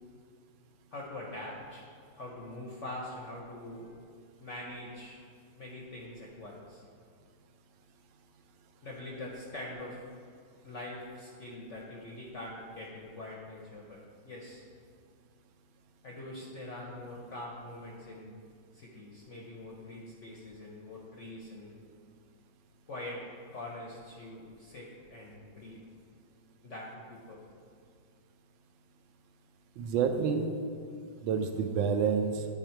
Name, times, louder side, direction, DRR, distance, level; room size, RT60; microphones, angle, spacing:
voice 1, 0.9-1.8 2.1-3.9 4.4-5.2 5.6-6.8 8.8-10.0 10.6-14.0 14.2-14.6 16.0-18.3 18.7-21.7 22.9-23.2 23.5-25.8 26.6-27.4, left 1 dB, 60° left, -3 dB, 0.8 m, -43 dB
voice 2, 29.8-30.5 31.2-32.5, right 6 dB, 80° right, 6 dB, 1.3 m, -28 dB
9.8 x 3.6 x 4.4 m, 2.2 s
omnidirectional pair, 2.1 m